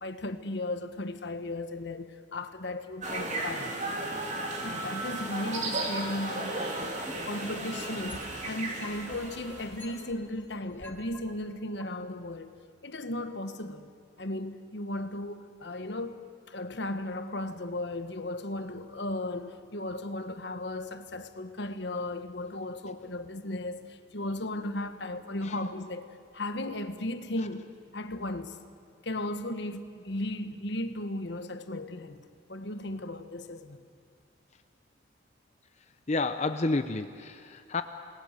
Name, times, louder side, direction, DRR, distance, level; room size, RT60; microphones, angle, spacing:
voice 1, 0.0-3.8 4.6-12.6 12.8-13.9 14.2-16.2 16.5-26.1 26.3-27.7 27.9-28.6 29.0-32.2 32.5-33.8, left 1 dB, 65° left, 1.3 m, -36 dB
sound 1, 3.0-9.9, right 2 dB, 40° right, 2.8 m, -35 dB
sound 2, 6.8-8.4 8.8-11.2 11.8-11.9, left 1 dB, 10° left, 2.3 m, -47 dB
voice 2, 36.1-37.8, left 3 dB, 35° left, 0.6 m, -30 dB
28.0 x 19.5 x 6.7 m
head